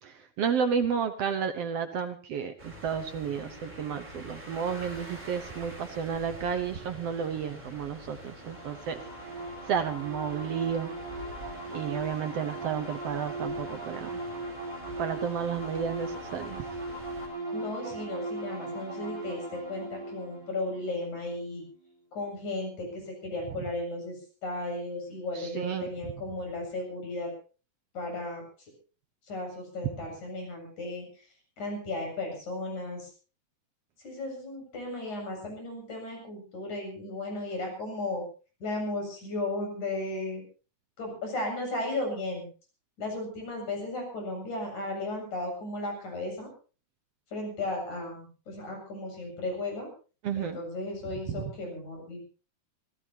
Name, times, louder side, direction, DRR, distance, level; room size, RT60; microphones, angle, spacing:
voice 1, 0.0-9.0 9.7-10.9 11.7-14.2 15.0-16.6 25.4-26.1 50.2-50.6 51.3-51.4, right 7 dB, 60° right, 8 dB, 1.9 m, -32 dB
sound 1, 2.6-17.3, equal, 15° right, 6.2 m, -47 dB
sound 2, 8.4-21.9, right 2 dB, 35° right, 7.4 m, -39 dB
voice 2, 17.5-21.6 22.1-27.3 27.9-28.4 29.3-31.0 31.6-33.1 34.0-38.2 38.6-40.4 41.0-42.5 43.0-46.5 47.3-49.9 50.4-52.3, left 2 dB, 70° left, 2 dB, 8.9 m, -35 dB
25.5 x 16.5 x 2.9 m, 0.36 s
omnidirectional pair, 3.5 m